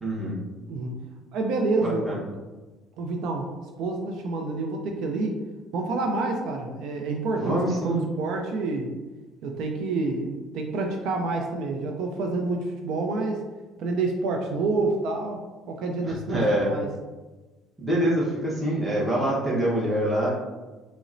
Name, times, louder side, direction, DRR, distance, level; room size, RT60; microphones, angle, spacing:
voice 1, 0.0-0.4 1.8-2.2 7.4-8.0 16.3-16.7 17.8-20.3, right 1 dB, 5° right, -7 dB, 0.9 m, -25 dB
voice 2, 1.3-2.2 3.0-3.5 3.8-5.4 5.7-8.9 9.4-13.4 13.8-16.9, right 3 dB, 70° right, 2 dB, 0.4 m, -28 dB
3.9 x 2.0 x 2.5 m, 1.2 s
cardioid pair, 110°, 0 cm